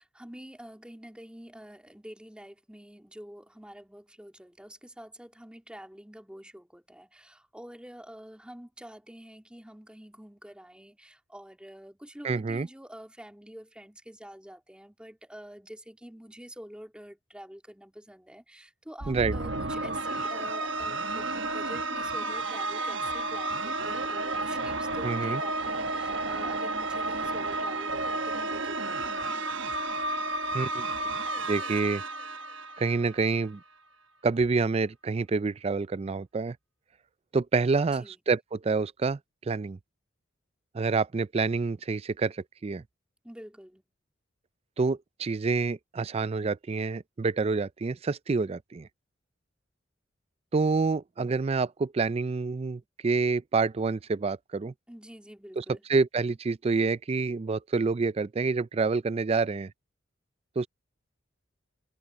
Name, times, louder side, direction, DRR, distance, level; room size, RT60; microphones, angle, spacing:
voice 1, 0.0-29.4 29.7-30.0 37.9-38.2 43.2-43.8 54.9-55.8, equal, 5° right, 2.6 m, -47 dB
voice 2, 12.2-12.7 19.1-19.3 25.0-25.4 30.5-30.8 31.5-32.0 32.8-33.6 34.2-36.6 37.3-39.2 39.5-39.8 40.7-42.8 44.8-48.9 50.5-54.7 55.6-55.7 55.9-59.7 60.6-60.7, right 4 dB, 30° right, 0.4 m, -27 dB
sound 1, 19.0-33.4, right 2 dB, 70° right, 1.2 m, -32 dB
head